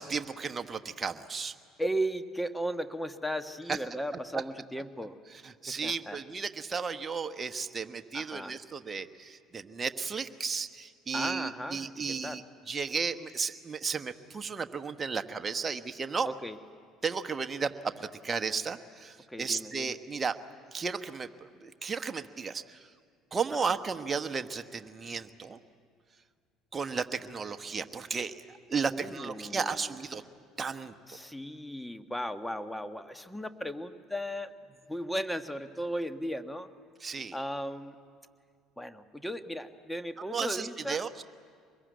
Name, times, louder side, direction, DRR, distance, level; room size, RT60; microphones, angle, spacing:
voice 1, 0.0-1.5 3.7-3.8 5.4-16.3 17.0-20.3 20.7-21.3 21.6-22.9 23.3-25.6 26.7-30.2 30.6-30.9 37.0-37.4 40.3-41.2, right 5 dB, 30° right, 8 dB, 1.2 m, -34 dB
voice 2, 1.8-5.1 5.7-6.2 8.1-8.6 11.1-12.4 16.2-16.6 19.3-20.0 23.6-23.7 28.9-30.0 31.1-34.5 34.9-36.7 37.3-37.9 38.8-41.1, equal, 5° left, 9 dB, 1.4 m, -36 dB
24.5 x 21.5 x 9.3 m, 2.1 s
hypercardioid pair, 60°, 0 cm